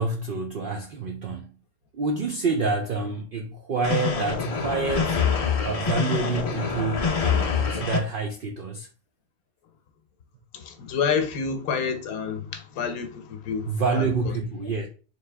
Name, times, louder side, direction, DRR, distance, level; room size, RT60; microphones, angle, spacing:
voice 1, 0.0-1.6 1.9-5.2 5.6-8.9 13.7-14.9, right 4 dB, 70° right, 0.5 m, -28 dB
sound 1, 3.8-8.0, left 6 dB, 50° left, 0.4 m, -25 dB
voice 2, 10.5-14.3, left 6 dB, 80° left, 1.2 m, -29 dB
3.8 x 3.0 x 3.3 m
omnidirectional pair, 1.5 m